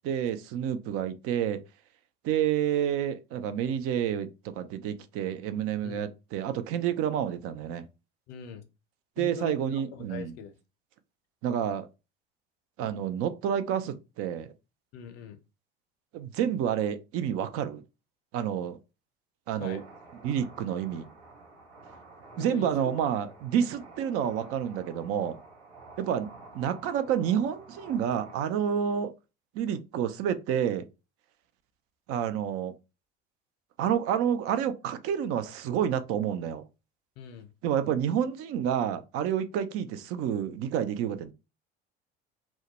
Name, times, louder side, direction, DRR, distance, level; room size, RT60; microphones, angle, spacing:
voice 1, 0.0-1.6 2.2-7.9 9.2-10.3 11.4-11.9 12.8-14.5 16.1-17.8 18.3-18.8 19.5-19.8 20.2-21.1 22.4-25.4 26.0-29.1 29.5-30.8 32.1-32.7 33.8-36.6 37.6-41.3, right 9 dB, 45° right, 0.4 m, -29 dB
voice 2, 8.3-8.7 9.2-10.5 14.9-15.4 19.5-19.8 22.4-23.0 37.2-37.5, left 8 dB, 50° left, 0.6 m, -42 dB
sound 1, 19.6-28.3, right 3 dB, 70° right, 0.8 m, -50 dB
2.2 x 2.0 x 2.8 m
hypercardioid pair, 70°, 32 cm